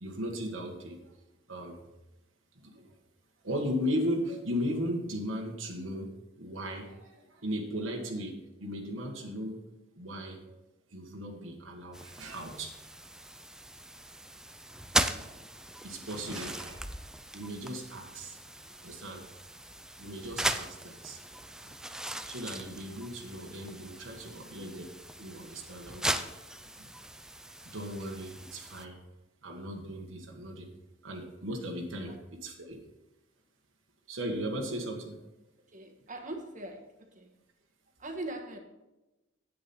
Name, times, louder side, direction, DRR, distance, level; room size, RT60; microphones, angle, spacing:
voice 1, 0.0-1.1 1.5-1.9 2.5-2.9 3.4-9.6 9.9-10.6 10.9-12.7 15.8-16.9 17.3-18.4 18.8-19.2 20.0-21.2 22.3-26.3 26.8-26.9 27.6-29.0 29.4-30.7 31.0-32.8 34.1-35.2, equal, 80° right, 1 dB, 1.5 m, -37 dB
sound 1, 11.9-28.8, right 1 dB, 5° right, 0.4 m, -38 dB
voice 2, 35.7-37.3 38.0-38.6, right 2 dB, 40° right, 4 dB, 1.4 m, -41 dB
8.8 x 8.6 x 4.3 m, 1.0 s
head